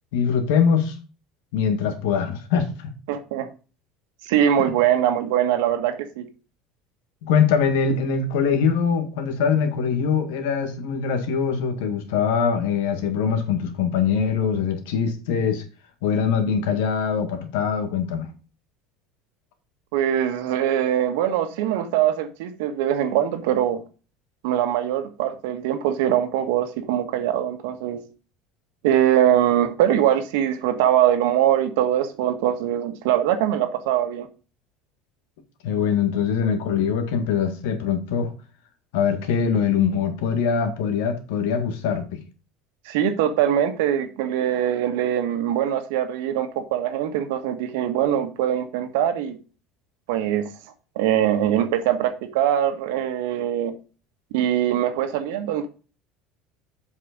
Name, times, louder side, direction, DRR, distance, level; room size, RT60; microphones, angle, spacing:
voice 1, 0.1-1.0 1.5-2.9 7.2-15.6 16.0-18.3 35.6-38.3 38.9-42.2, left 6 dB, 85° left, 1.9 m, -23 dB
voice 2, 3.1-3.5 4.2-6.3 19.9-23.8 24.4-28.0 28.8-34.3 42.8-49.4 50.1-50.5 50.9-53.7 54.3-55.7, right 10 dB, 85° right, 1.6 m, -22 dB
7.7 x 5.4 x 5.2 m
cardioid pair, 160°, 0 cm